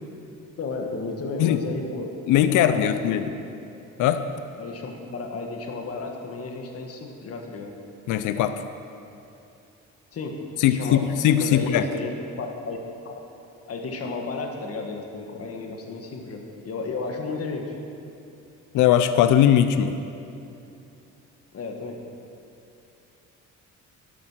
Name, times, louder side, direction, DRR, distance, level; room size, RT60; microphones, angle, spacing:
voice 1, 0.6-2.2 2.5-3.2 4.6-7.7 10.1-10.4 10.7-11.1 11.4-12.8 13.0-13.2 13.7-17.7 21.5-22.0, left 3 dB, 50° left, 2 dB, 1.8 m, -33 dB
voice 2, 2.3-3.2 4.0-4.2 8.1-8.6 10.6-11.9 18.7-20.0, left 10 dB, 90° left, 10 dB, 0.7 m, -20 dB
12.5 x 11.0 x 6.4 m, 2.8 s
cardioid pair, 90°, 30 cm